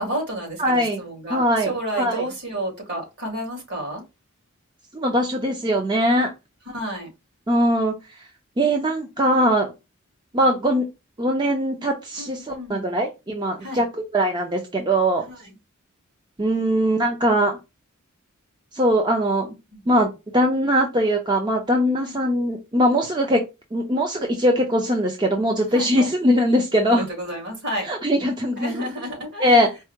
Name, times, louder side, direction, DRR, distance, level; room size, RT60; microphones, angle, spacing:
voice 1, 0.0-4.0 6.7-7.1 12.2-13.0 13.6-13.8 15.2-15.5 19.7-19.8 22.0-22.1 25.7-26.1 26.8-27.9 28.6-29.7, right 1 dB, 55° right, 2.3 m, -31 dB
voice 2, 0.6-1.0 1.3-1.7 2.0-2.2 4.9-6.3 7.5-7.9 8.6-9.7 10.3-10.8 11.2-15.2 16.4-17.6 18.7-19.5 19.9-23.4 23.7-27.1 27.8-28.9 29.4-29.7, equal, 20° right, 0.6 m, -21 dB
4.6 x 2.2 x 4.5 m
head